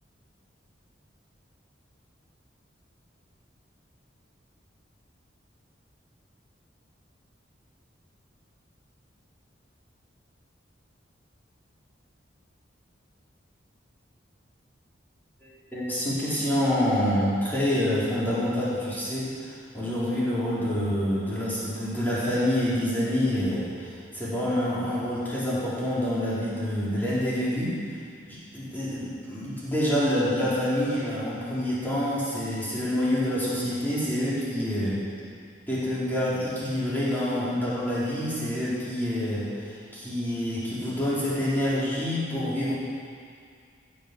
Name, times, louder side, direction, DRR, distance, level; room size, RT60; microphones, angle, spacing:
voice 1, 15.4-27.8 28.3-35.1 35.7-42.7, equal, 10° left, -10 dB, 3.9 m, -27 dB
16.0 x 7.7 x 6.9 m, 2.2 s
head